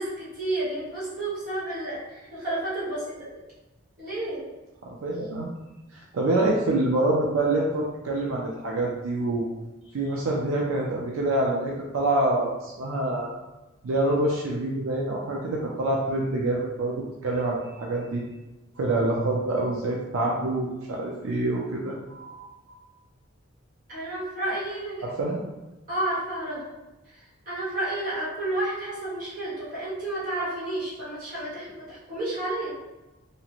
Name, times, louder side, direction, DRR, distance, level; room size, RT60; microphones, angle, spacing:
voice 1, 0.0-3.4 4.0-4.5 23.9-25.3 25.9-26.7 27.1-32.7, right 1 dB, 40° right, -10 dB, 1.4 m, -31 dB
voice 2, 4.8-5.5 5.9-9.5 9.9-13.3 13.8-16.9 17.2-18.2 18.8-22.8 25.0-25.4, right 2 dB, 85° right, -2 dB, 0.4 m, -26 dB
2.8 x 2.4 x 2.9 m, 1.0 s
head